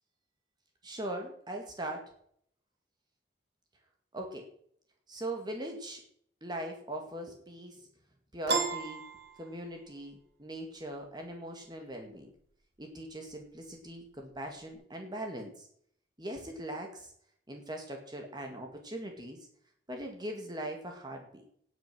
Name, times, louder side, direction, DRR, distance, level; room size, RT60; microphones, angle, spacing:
voice 1, 0.8-2.1 4.1-4.5 5.1-6.0 6.4-7.9 8.3-9.0 9.4-12.3 12.8-15.7 16.2-17.1 17.5-19.5 19.9-21.4, right 1 dB, 25° right, 2 dB, 1.9 m, -40 dB
Piano, 8.5-10.0, right 4 dB, 65° right, 2.3 m, -33 dB
18.5 x 6.4 x 6.1 m, 0.64 s
head